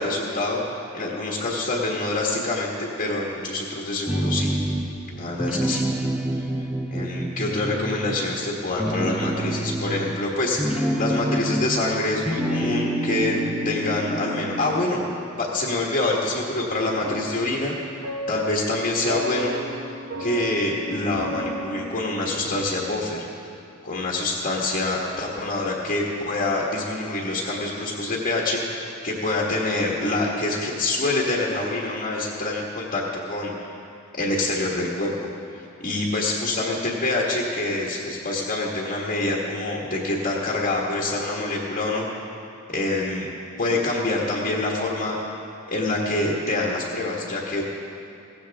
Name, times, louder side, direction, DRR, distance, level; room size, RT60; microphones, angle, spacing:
voice 1, 0.0-4.6 5.1-5.8 6.6-15.0 15.4-17.7 18.3-19.6 20.2-23.3 23.8-33.7 34.1-35.1 35.5-42.1 42.7-43.3 43.6-45.2 45.7-47.6, left 2 dB, 40° left, -3 dB, 1.5 m, -26 dB
sound 1, 4.1-5.0 5.3-8.4 8.7-11.9 12.2-14.9, right 1 dB, 5° right, 0.8 m, -27 dB
sound 2, 17.0-22.9, right 1 dB, 55° right, 1.2 m, -34 dB
17.0 x 15.5 x 3.5 m, 2.7 s
head